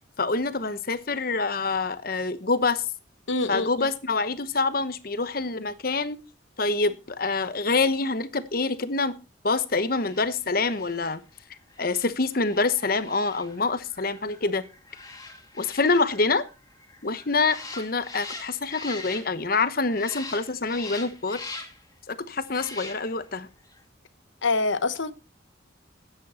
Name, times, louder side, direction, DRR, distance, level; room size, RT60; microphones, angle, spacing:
voice 1, 0.2-2.8 3.5-6.2 6.6-9.1 9.4-11.2 11.8-14.6 15.6-16.4 17.0-21.4 22.1-23.5, left 3 dB, 50° left, 1.0 m, -26 dB
voice 2, 3.3-3.9 24.4-25.1, left 3 dB, 80° left, 1.0 m, -25 dB
sound 1, 9.8-19.6 19.9-21.9 22.4-23.3 23.6-23.8, left 3 dB, 20° left, 2.3 m, -43 dB
13.5 x 9.4 x 4.3 m
head